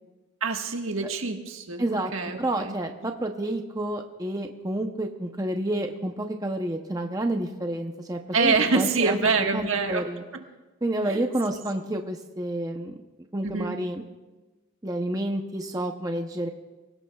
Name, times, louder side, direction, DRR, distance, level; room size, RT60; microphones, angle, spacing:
voice 1, 0.4-1.8 2.1-2.8 8.3-10.0 11.1-11.2 11.5-11.6 13.4-13.7, right 4 dB, 70° right, 3 dB, 1.5 m, -25 dB
voice 2, 1.8-2.1 2.4-10.2 10.8-13.0 13.3-14.0 14.8-16.5, right 1 dB, 15° right, 4 dB, 0.7 m, -29 dB
28.0 x 17.5 x 2.3 m, 1.2 s
head